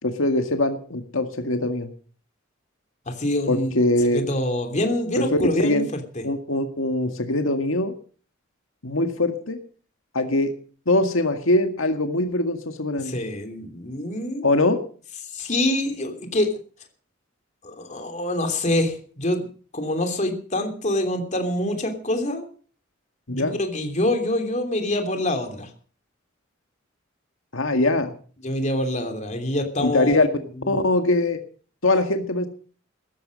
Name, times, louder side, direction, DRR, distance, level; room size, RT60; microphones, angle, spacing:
voice 1, 0.0-1.9 3.5-4.2 5.2-5.9 6.2-7.9 8.8-9.6 10.1-10.5 10.9-13.2 14.4-14.8 23.3-23.6 27.5-28.1 29.8-30.3 30.7-31.4 31.8-32.5, left 2 dB, 90° left, 6 dB, 1.9 m, -22 dB
voice 2, 3.1-3.7 4.1-6.2 13.0-14.5 15.3-16.5 17.6-19.5 19.7-22.4 23.3-25.7 28.4-30.2 30.6-30.8, left 1 dB, 35° left, 5 dB, 3.1 m, -25 dB
17.0 x 14.0 x 5.3 m, 0.42 s
head